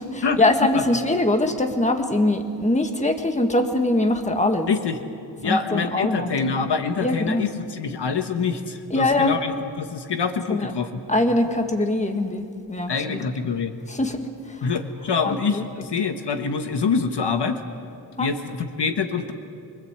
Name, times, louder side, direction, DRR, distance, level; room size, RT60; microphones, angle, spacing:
voice 1, 0.0-4.7 5.4-6.5 7.0-7.5 8.9-9.4 10.5-10.7 11.1-13.2 13.9-14.7 15.2-15.6 18.2-18.3, left 2 dB, 15° left, 5 dB, 1.6 m, -23 dB
voice 2, 4.7-5.0 5.4-9.5 9.8-11.0 12.9-13.7 14.6-17.6 18.2-19.3, left 5 dB, 65° left, 7 dB, 1.4 m, -25 dB
24.5 x 23.5 x 8.1 m, 2.4 s
wide cardioid pair, 135°, 45 cm